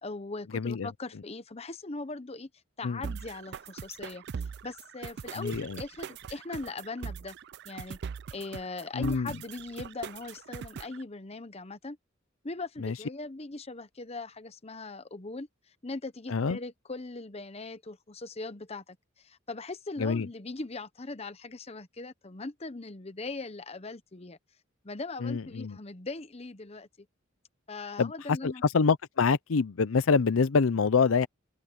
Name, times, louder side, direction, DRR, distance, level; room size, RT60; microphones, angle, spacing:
voice 1, 0.0-2.5 2.8-7.4 7.6-8.0 8.3-12.0 12.4-15.5 15.8-24.4 24.8-26.9 27.7-28.6, left 3 dB, 30° left, 0.9 m, -40 dB
voice 2, 0.5-0.9 2.8-3.0 5.4-5.8 8.9-9.3 12.8-12.9 16.3-16.6 20.0-20.3 25.2-25.8 28.0-28.1 28.4-31.3, left 5 dB, 80° left, 0.6 m, -26 dB
sound 1, 3.0-11.0, right 6 dB, 55° right, 0.4 m, -41 dB
head